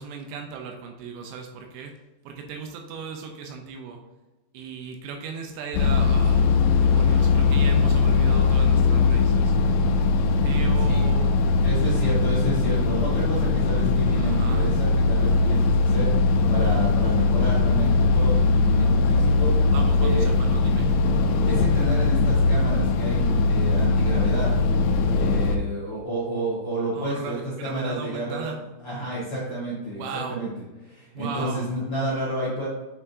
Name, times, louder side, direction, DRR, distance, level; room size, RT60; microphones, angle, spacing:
voice 1, 0.0-1.9 2.3-4.0 4.5-6.4 6.8-9.6 10.4-11.4 14.2-14.8 19.6-21.0 26.9-28.6 30.0-30.4 31.1-31.7, right 5 dB, 80° right, 3 dB, 2.8 m, -36 dB
sound 1, 5.7-25.6, left 4 dB, 85° left, 2.9 m, -20 dB
voice 2, 11.6-20.3 21.5-24.5 25.1-28.5 28.8-30.5 30.8-32.7, right 1 dB, 50° left, -9 dB, 1.6 m, -30 dB
8.3 x 5.6 x 2.7 m, 1.1 s
omnidirectional pair, 5.3 m